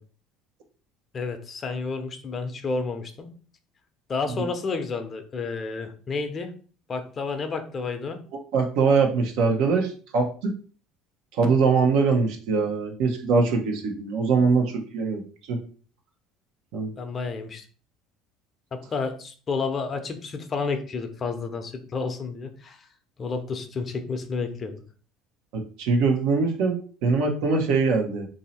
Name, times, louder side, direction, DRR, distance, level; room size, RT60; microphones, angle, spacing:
voice 1, 1.1-3.3 4.1-6.5 6.9-8.2 17.0-17.6 18.7-22.9 23.2-24.8, left 4 dB, 40° left, 7 dB, 0.7 m, -30 dB
voice 2, 8.5-10.5 11.3-15.2 15.5-15.6 16.7-16.9 25.5-28.3, right 4 dB, 70° right, 3 dB, 0.9 m, -22 dB
3.0 x 2.7 x 4.2 m, 0.41 s
hypercardioid pair, 80°, 0 cm